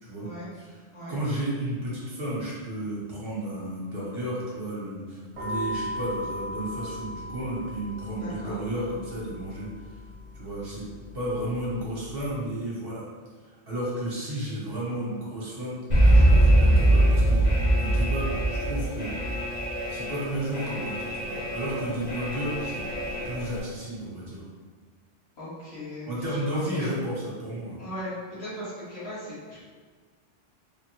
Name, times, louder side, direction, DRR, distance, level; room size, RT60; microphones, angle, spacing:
voice 1, 1.1-10.0 10.3-10.8 11.1-13.1 13.4-19.2 19.9-22.8 23.2-24.4 26.0-27.1 27.4-27.8, right 1 dB, 60° right, -7 dB, 1.0 m, -33 dB
sound 1, 5.3-12.3, left 1 dB, 35° right, 0.9 m, -38 dB
voice 2, 8.2-8.6 25.4-26.9 27.8-29.6, equal, 65° left, -10 dB, 1.4 m, -38 dB
Alarm, 15.9-23.6, right 1 dB, 45° left, 0.8 m, -23 dB
3.2 x 2.1 x 2.9 m, 1.5 s
omnidirectional pair, 1.2 m